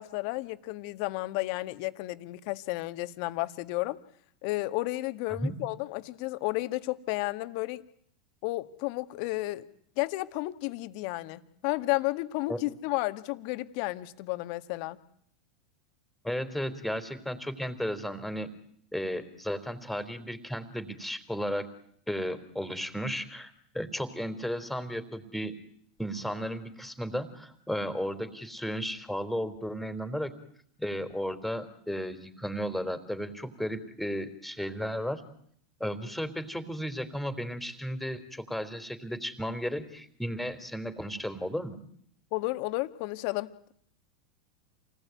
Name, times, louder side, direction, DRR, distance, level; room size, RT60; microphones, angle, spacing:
voice 1, 0.0-4.0 4.4-7.8 8.4-9.7 10.0-15.0 42.3-43.7, left 20 dB, 60° left, 11 dB, 1.8 m, -32 dB
voice 2, 16.2-18.5 18.9-21.7 22.1-25.5 26.0-30.3 30.8-35.2 35.8-41.8, equal, 5° left, 11 dB, 3.9 m, -34 dB
28.5 x 19.5 x 9.4 m, 0.66 s
hypercardioid pair, 100°, 4 cm